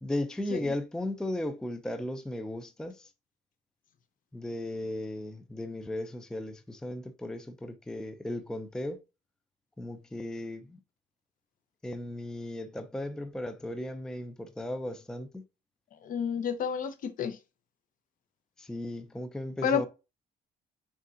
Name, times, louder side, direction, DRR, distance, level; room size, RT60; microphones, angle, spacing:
voice 1, 0.0-3.1 4.3-9.0 9.8-10.8 11.8-15.4 18.6-19.9, left 1 dB, 5° left, 0.4 m, -36 dB
voice 2, 15.9-17.4 19.6-19.9, left 7 dB, 55° left, 0.7 m, -30 dB
4.0 x 3.6 x 2.5 m
cardioid pair, 110°, 17 cm